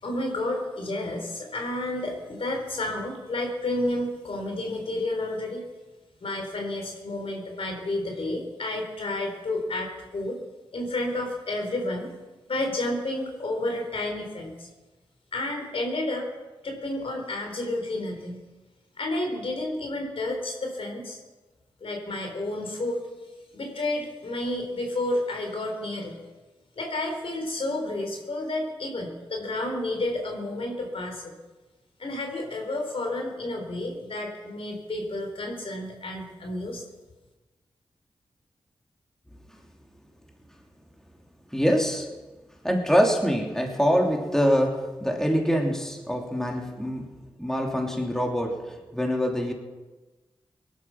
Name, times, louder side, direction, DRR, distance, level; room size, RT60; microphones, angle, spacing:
voice 1, 0.0-5.6 6.2-10.4 10.7-12.1 12.5-14.7 15.3-16.3 16.6-18.4 19.0-21.2 21.8-23.0 23.5-26.2 26.8-31.3 32.0-36.8, left 1 dB, 70° left, 2 dB, 4.1 m, -31 dB
voice 2, 41.5-42.1 42.6-47.0 47.4-49.5, equal, 5° left, 1 dB, 3.0 m, -24 dB
18.5 x 11.5 x 5.9 m, 1.2 s
cardioid pair, 40°, 10 cm